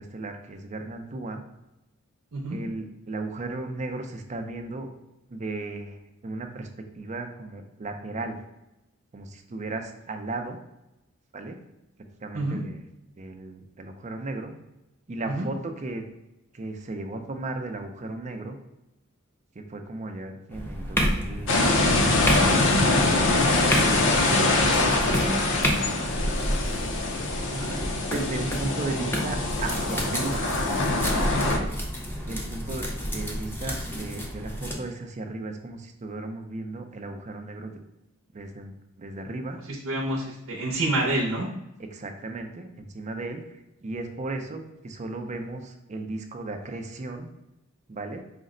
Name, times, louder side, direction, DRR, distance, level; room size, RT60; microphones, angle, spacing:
voice 1, 0.0-1.4 2.5-4.9 5.3-6.7 6.9-8.4 9.1-10.6 11.3-11.6 12.2-12.8 13.2-14.5 15.1-16.0 16.5-18.6 19.5-22.9 23.6-23.8 24.3-25.3 27.7-30.6 31.0-31.3 32.3-37.8 38.3-39.6 41.8-47.3 47.9-48.2, right 2 dB, 35° right, 5 dB, 0.5 m, -35 dB
sound 1, 20.5-34.8, equal, 10° left, 0.6 m, -30 dB
sound 2, 21.5-31.6, left 2 dB, 60° left, 0.6 m, -24 dB
voice 2, 39.8-41.5, right 1 dB, 75° right, -2 dB, 0.7 m, -28 dB
5.0 x 2.1 x 3.7 m, 0.91 s
head